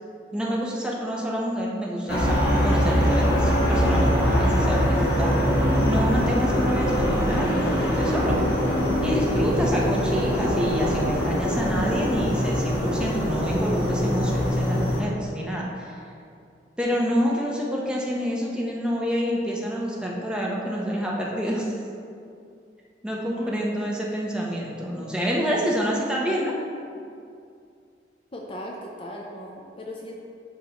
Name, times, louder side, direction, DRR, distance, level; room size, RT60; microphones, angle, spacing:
voice 1, 0.3-8.4 9.0-16.0 16.8-21.7 23.0-26.5, equal, 5° right, -4 dB, 0.7 m, -28 dB
sound 1, 2.1-15.0, equal, 60° left, 1.2 m, -23 dB
voice 2, 28.3-30.1, equal, 30° left, -1 dB, 0.5 m, -38 dB
11.0 x 3.7 x 2.9 m, 2.5 s
head